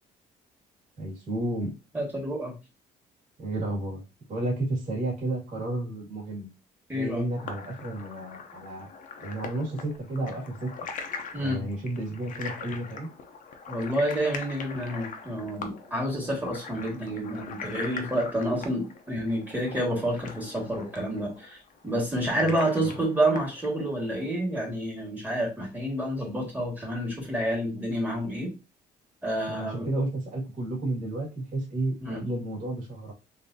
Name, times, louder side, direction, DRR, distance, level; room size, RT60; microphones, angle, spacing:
voice 1, 1.0-1.7 3.4-4.0 4.3-6.5 6.9-8.9 9.2-10.7 11.4-13.1 22.4-22.9 29.5-33.1, right 2 dB, 45° right, -4 dB, 2.0 m, -32 dB
voice 2, 1.9-2.5 6.9-7.2 11.3-11.6 13.7-28.5 29.2-29.9 32.0-32.2, right 1 dB, 10° right, -2 dB, 1.9 m, -29 dB
sound 1, 7.4-24.3, left 5 dB, 50° left, 0.7 m, -42 dB
3.8 x 2.9 x 2.7 m, 0.28 s
cardioid pair, 110°, 17 cm